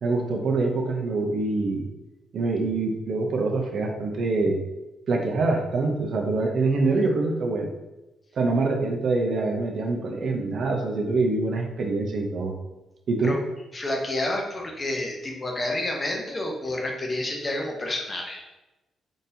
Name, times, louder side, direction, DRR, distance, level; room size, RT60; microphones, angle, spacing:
voice 1, 0.0-1.9 2.3-4.6 5.1-7.7 8.3-12.6 13.1-13.4, right 3 dB, 55° right, 2 dB, 0.5 m, -25 dB
voice 2, 13.7-18.4, left 1 dB, 25° left, 0 dB, 0.6 m, -29 dB
3.9 x 2.7 x 2.6 m, 1.0 s
cardioid pair, 130°, 0 cm